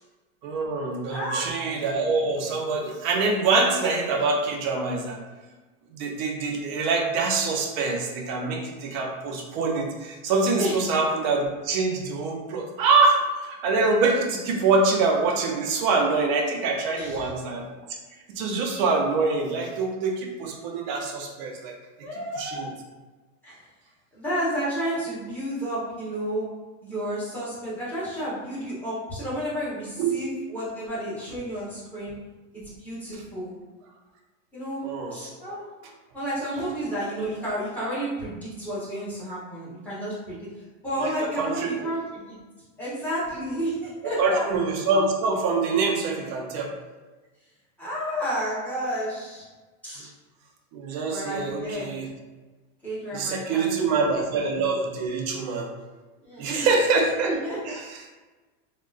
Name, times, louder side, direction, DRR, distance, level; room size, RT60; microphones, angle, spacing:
voice 1, 0.4-5.2 5.9-17.8 18.4-21.7 22.4-22.7 30.0-30.2 34.8-35.2 41.0-41.8 44.2-46.7 50.7-52.1 53.1-55.7 56.4-57.3 57.7-58.2, right 3 dB, 35° right, 1 dB, 0.4 m, -25 dB
voice 2, 1.1-1.5 10.6-10.8 16.9-17.3 22.0-22.7 23.4-23.6 24.1-26.5 26.8-32.1 32.8-33.5 34.5-35.6 36.1-40.5 40.8-42.4 42.8-44.5 47.8-49.5 49.8-50.1 51.1-51.9 52.8-54.2 56.2-56.7 57.2-57.8, equal, 5° left, -10 dB, 0.8 m, -31 dB
3.6 x 2.1 x 2.3 m, 1.2 s
supercardioid pair, 155°, 41 cm